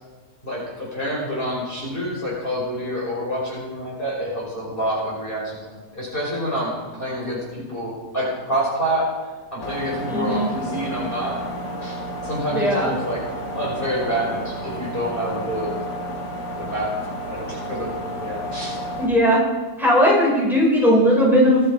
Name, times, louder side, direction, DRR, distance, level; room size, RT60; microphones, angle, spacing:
voice 1, 0.4-9.1 9.5-11.4 11.8-12.0 12.2-13.2 13.5-15.7 16.6-16.9 17.3-18.8, equal, 30° left, -5 dB, 5.2 m, -27 dB
sound 1, 9.6-19.1, equal, 80° left, 2.0 m, -31 dB
voice 2, 10.1-10.5 12.5-12.9 19.0-19.4 19.8-21.6, equal, ahead, -5 dB, 5.5 m, -17 dB
19.5 x 12.5 x 5.0 m, 1.3 s
omnidirectional pair, 1.7 m